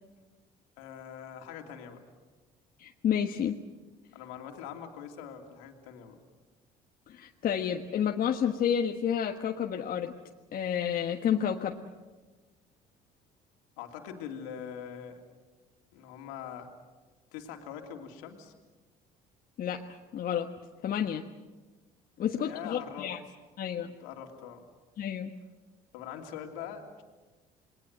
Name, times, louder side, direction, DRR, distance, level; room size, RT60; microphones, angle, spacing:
voice 1, 0.8-2.0 4.1-6.2 13.8-15.2 15.9-16.7 17.3-18.5 22.4-23.1 24.0-24.6 25.9-27.0, left 8 dB, 85° left, 3 dB, 2.9 m, -43 dB
voice 2, 2.8-3.6 7.1-10.1 10.5-11.8 19.6-19.8 20.1-20.5 20.8-21.2 22.2-23.2 23.6-23.9 25.0-25.3, left 9 dB, 55° left, 3 dB, 1.5 m, -30 dB
28.0 x 20.5 x 7.9 m, 1.3 s
supercardioid pair, 70°, 18 cm